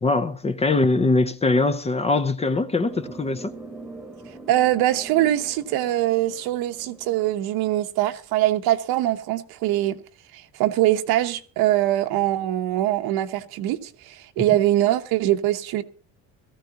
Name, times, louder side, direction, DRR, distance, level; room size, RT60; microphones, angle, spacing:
voice 1, 0.0-3.5 14.4-14.5, left 3 dB, 15° left, 0.7 m, -22 dB
sound 1, 2.9-7.8, right 2 dB, ahead, 1.4 m, -43 dB
voice 2, 4.5-10.0 10.3-15.8, right 14 dB, 75° right, 1.2 m, -23 dB
18.0 x 14.5 x 2.9 m
cardioid pair, 135°, 38 cm